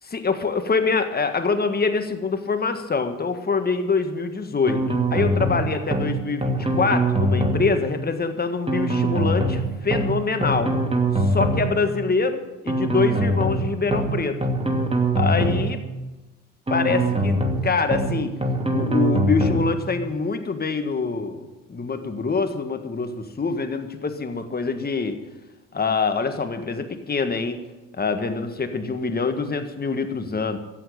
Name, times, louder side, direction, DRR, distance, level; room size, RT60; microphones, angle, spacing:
voice 1, 0.0-4.8 5.1-10.7 11.1-14.4 15.2-15.8 16.7-17.4 17.6-18.3 18.7-25.2 25.7-27.6 28.0-30.6, left 4 dB, 25° left, 7 dB, 1.7 m, -25 dB
sound 1, 4.7-5.6 5.9-6.1 6.4-7.6 8.7-9.6 9.9-10.1 10.4-11.6 12.7-13.6 13.9-14.1 14.4-15.6 16.7-17.6 17.9-18.1 18.4-19.6, right 1 dB, 15° right, 2.6 m, -22 dB
14.0 x 8.7 x 8.7 m, 1.1 s
figure-of-eight pair, 50°, 41 cm